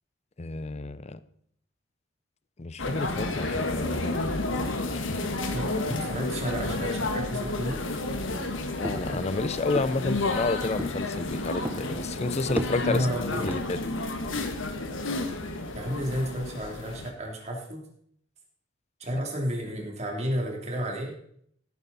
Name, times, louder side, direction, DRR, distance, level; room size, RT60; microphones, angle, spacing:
voice 1, 0.4-1.2 2.6-5.1 8.8-13.1 13.4-13.8 19.1-19.2, left 3 dB, 35° left, 15 dB, 0.6 m, -31 dB
sound 1, 2.8-17.1, left 2 dB, 75° left, 1.5 m, -31 dB
voice 2, 5.5-7.8 12.8-13.5 15.7-17.8 19.0-21.1, equal, 35° right, 0 dB, 3.1 m, -31 dB
sound 2, 8.0-13.6, right 1 dB, 10° right, 0.9 m, -37 dB
16.0 x 9.5 x 4.1 m, 0.66 s
head